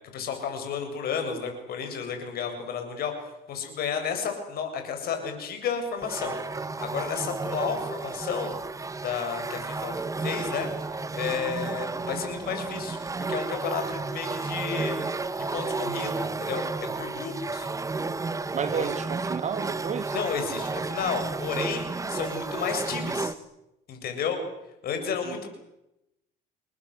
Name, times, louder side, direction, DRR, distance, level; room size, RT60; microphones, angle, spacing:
voice 1, 0.1-3.1 3.5-8.6 9.0-9.9 10.2-13.0 13.3-15.0 15.5-16.7 17.0-17.7 18.7-18.9 20.1-23.3 23.9-24.4 24.8-25.5, left 6 dB, 65° left, 7.6 m, -32 dB
sound 1, 6.0-23.3, right 3 dB, 20° right, 1.4 m, -32 dB
voice 2, 18.5-20.2 24.9-25.4, right 7 dB, 45° right, 1.5 m, -32 dB
29.0 x 20.0 x 8.2 m
cardioid pair, 110°, 17 cm